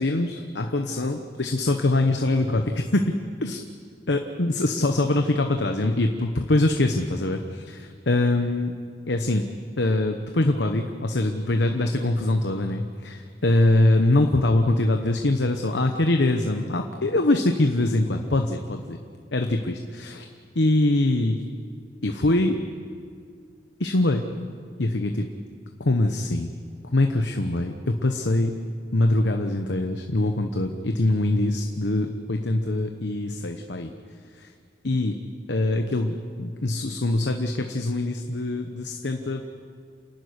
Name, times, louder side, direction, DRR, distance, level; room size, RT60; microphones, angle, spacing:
voice 1, 0.0-3.1 3.4-3.6 4.1-8.7 9.1-9.5 9.8-19.0 19.3-20.3 20.5-21.4 22.0-22.6 23.8-24.3 24.8-25.3 25.8-26.5 26.9-28.6 28.9-33.9 34.3-34.5 34.8-35.2 35.5-39.4, left 2 dB, 70° left, 5 dB, 1.1 m, -23 dB
28.0 x 11.5 x 9.7 m, 2.2 s
head